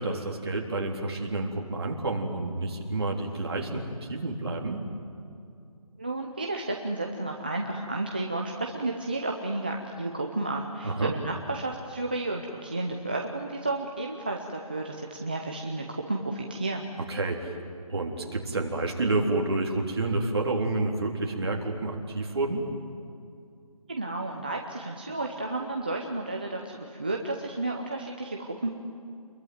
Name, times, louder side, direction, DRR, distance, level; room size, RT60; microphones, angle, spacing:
voice 1, 0.0-3.8 4.1-4.8 10.8-11.1 17.1-17.6 17.9-22.6, right 2 dB, 40° right, 0 dB, 3.6 m, -29 dB
voice 2, 6.0-16.8 23.9-28.7, right 2 dB, 15° right, 1 dB, 0.7 m, -32 dB
28.5 x 22.5 x 9.3 m, 2.5 s
figure-of-eight pair, 175°, 19 cm